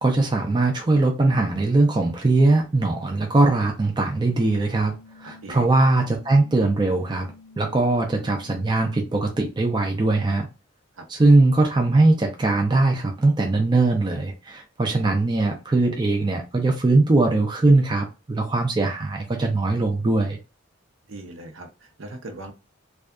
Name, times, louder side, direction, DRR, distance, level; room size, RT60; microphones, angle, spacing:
voice 1, 0.0-4.9 5.2-7.3 7.6-10.5 11.1-20.4, right 2 dB, 20° right, 0.4 m, -20 dB
sound 1, 4.3-9.3, left 4 dB, 35° left, 0.5 m, -49 dB
voice 2, 5.2-5.7 10.9-11.1 21.1-22.5, right 2 dB, 70° right, 0.6 m, -39 dB
2.6 x 2.3 x 2.2 m
head